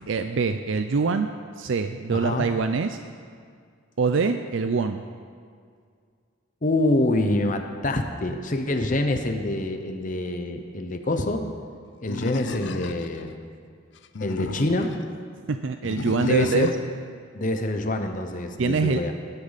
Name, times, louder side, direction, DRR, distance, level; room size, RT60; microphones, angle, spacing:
voice 1, 0.1-1.3 1.6-3.0 4.0-5.0 15.5-16.7 18.6-19.0, right 4 dB, 65° right, 8 dB, 0.5 m, -24 dB
voice 2, 2.1-2.5 6.6-11.4 12.0-13.4 14.2-14.9 16.2-16.7 17.3-19.1, left 1 dB, 40° left, 5 dB, 0.9 m, -26 dB
Animal, 12.1-13.2 14.0-15.1 15.8-16.9, left 3 dB, 60° left, 0.5 m, -34 dB
18.5 x 12.0 x 4.1 m, 2.2 s
head